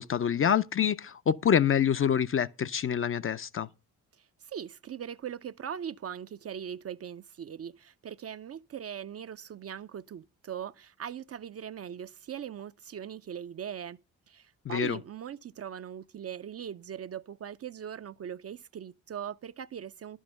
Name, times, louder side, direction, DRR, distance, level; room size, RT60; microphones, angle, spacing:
voice 1, 0.0-3.7 14.7-15.0, left 8 dB, 30° left, 0.5 m, -26 dB
voice 2, 4.2-14.0 14.3-20.2, right 9 dB, 35° right, 0.5 m, -40 dB
11.5 x 6.3 x 6.6 m
hypercardioid pair, 45°, 42 cm